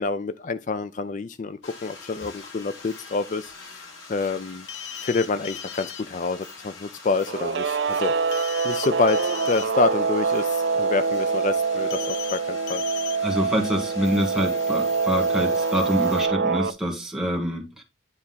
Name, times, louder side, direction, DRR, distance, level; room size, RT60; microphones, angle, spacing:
voice 1, 0.0-4.7 5.0-12.8, left 4 dB, 40° left, 0.3 m, -28 dB
sound 1, 1.6-16.3, left 4 dB, 85° left, 3.2 m, -44 dB
sound 2, 4.7-6.0 8.3-9.7 11.9-12.4 12.7-13.2, left 10 dB, 55° left, 0.9 m, -36 dB
Guitar, 7.3-16.7, right 4 dB, 60° right, 0.5 m, -25 dB
voice 2, 13.2-17.8, equal, 5° right, 1.7 m, -26 dB
9.9 x 3.5 x 5.6 m
head